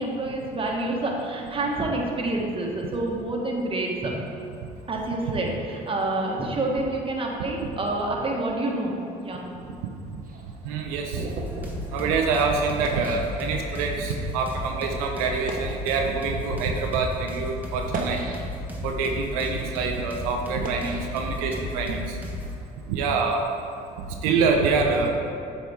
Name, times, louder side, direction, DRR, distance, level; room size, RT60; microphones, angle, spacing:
voice 1, 0.0-4.1 4.9-9.4, right 2 dB, 30° right, -1 dB, 1.3 m, -28 dB
sound 1, 10.2-14.0 14.6-14.8 15.3-15.9 16.6-16.8 17.7-18.8 19.3-21.9, right 3 dB, 50° right, 0.9 m, -37 dB
voice 2, 10.6-11.3 11.9-18.2 18.8-22.2 22.9-23.5 24.2-25.1, right 4 dB, 90° right, 2 dB, 0.6 m, -26 dB
sound 2, 11.3-22.6, left 1 dB, 10° right, 1.2 m, -34 dB
7.6 x 4.2 x 3.5 m, 2.5 s
hypercardioid pair, 65°, 18 cm